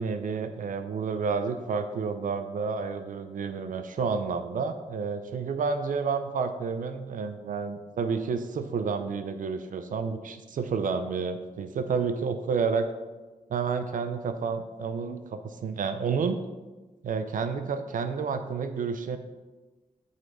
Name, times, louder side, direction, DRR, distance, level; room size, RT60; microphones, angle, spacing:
voice 1, 0.0-12.9 13.5-16.4 17.0-19.2, right 5 dB, 85° right, 9 dB, 0.5 m, -30 dB
7.4 x 4.2 x 4.9 m, 1.2 s
wide cardioid pair, 155°, 13 cm